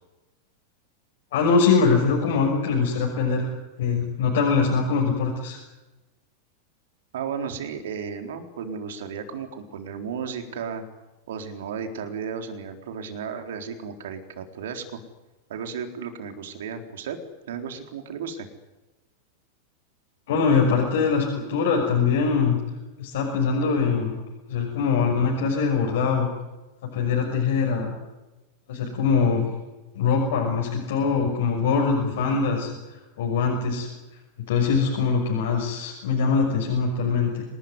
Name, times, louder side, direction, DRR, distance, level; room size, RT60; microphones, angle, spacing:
voice 1, 1.3-3.5 3.8-5.6 20.3-22.6 23.0-24.2 24.5-26.3 26.9-27.9 28.7-29.5 29.9-33.9 34.5-37.4, left 5 dB, 55° left, -1 dB, 6.4 m, -23 dB
voice 2, 7.1-10.8 11.3-15.0 15.5-17.2 17.5-18.5, right 6 dB, 60° right, 6 dB, 4.0 m, -34 dB
27.0 x 20.0 x 9.7 m, 1.1 s
figure-of-eight pair, 90°, 0 cm